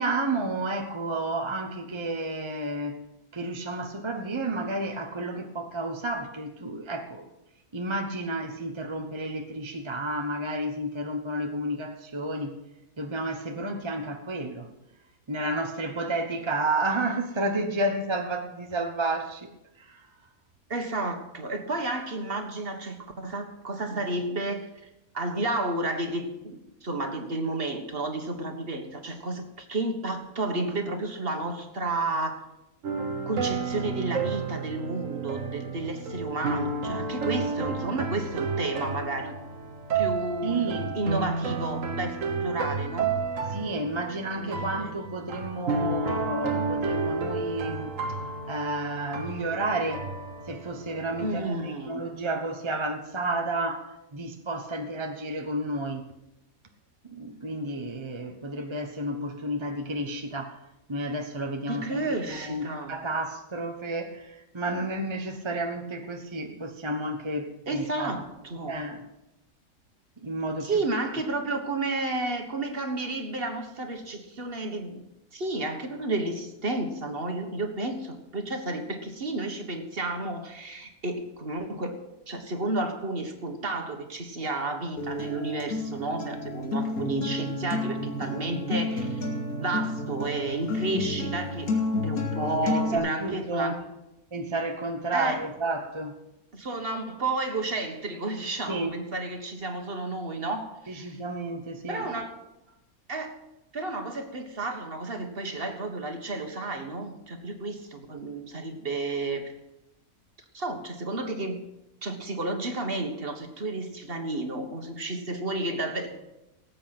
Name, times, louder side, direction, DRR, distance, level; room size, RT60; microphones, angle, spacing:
voice 1, 0.0-3.0 3.3-7.3 7.7-12.5 13.0-14.7 15.3-19.5 19.8-20.1 40.4-41.0 43.5-48.2 48.5-50.1 50.5-56.1 57.0-60.6 60.9-62.1 62.4-68.1 68.6-69.0 70.2-70.7 92.6-93.7 94.3-96.1 98.7-98.9 100.9-102.1, right 2 dB, 25° right, 5 dB, 0.9 m, -31 dB
voice 2, 20.7-24.7 25.1-32.4 33.3-39.4 39.9-43.1 44.4-44.9 51.2-52.0 61.7-63.0 67.7-68.8 70.6-75.0 75.3-82.0 82.3-89.2 89.6-91.7 92.0-93.8 95.1-95.5 96.5-101.2 101.9-102.4 103.1-103.3 103.7-109.4 110.5-111.6 112.0-116.1, right 2 dB, 40° right, 5 dB, 1.7 m, -31 dB
sound 1, 32.8-51.4, right 4 dB, 65° right, 1.7 m, -31 dB
Acoustic guitar, 85.0-93.0, left 2 dB, 90° left, 2.6 m, -30 dB
18.5 x 8.6 x 5.9 m, 0.91 s
omnidirectional pair, 1.5 m